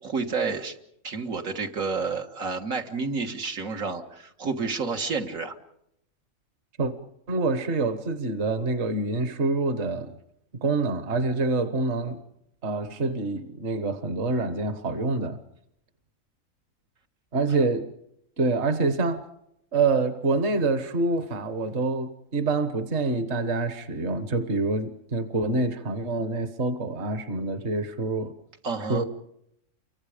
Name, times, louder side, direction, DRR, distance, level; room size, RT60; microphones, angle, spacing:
voice 1, 0.0-0.8 1.0-5.6 28.6-29.0, right 4 dB, 80° right, 3 dB, 2.1 m, -30 dB
voice 2, 7.3-10.1 10.6-12.2 12.6-15.4 17.3-17.9 18.4-19.2 19.7-28.3 28.9-29.0, right 3 dB, 55° right, 9 dB, 1.6 m, -26 dB
29.5 x 24.5 x 5.1 m, 0.78 s
omnidirectional pair, 1.4 m